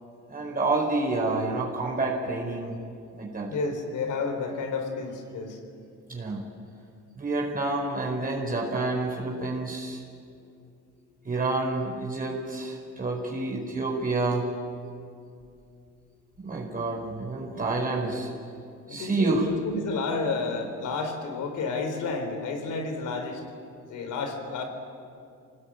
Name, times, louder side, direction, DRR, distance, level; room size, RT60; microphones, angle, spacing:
voice 1, 0.3-2.8 3.2-3.5 6.1-6.4 7.2-10.0 11.2-14.5 16.4-18.3 18.9-19.5, right 2 dB, 30° right, -2 dB, 4.7 m, -28 dB
voice 2, 3.5-5.6 18.9-23.4 23.9-24.6, left 4 dB, 80° left, 6 dB, 4.0 m, -31 dB
25.5 x 19.5 x 8.9 m, 2.5 s
cardioid pair, 90°, 30 cm